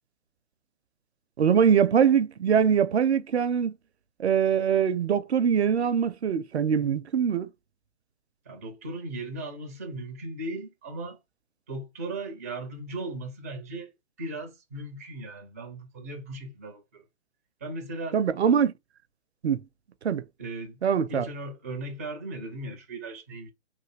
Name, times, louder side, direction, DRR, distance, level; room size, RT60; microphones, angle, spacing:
voice 1, 1.4-3.7 4.2-7.5 18.1-18.7 19.4-19.6 20.0-20.2 20.8-21.3, right 7 dB, 75° right, 0.5 m, -23 dB
voice 2, 8.5-11.2 11.7-13.9 14.2-17.0 17.6-18.2 20.4-20.8 21.1-23.5, right 2 dB, 15° right, 0.4 m, -37 dB
3.3 x 2.2 x 3.1 m
figure-of-eight pair, 135°, 34 cm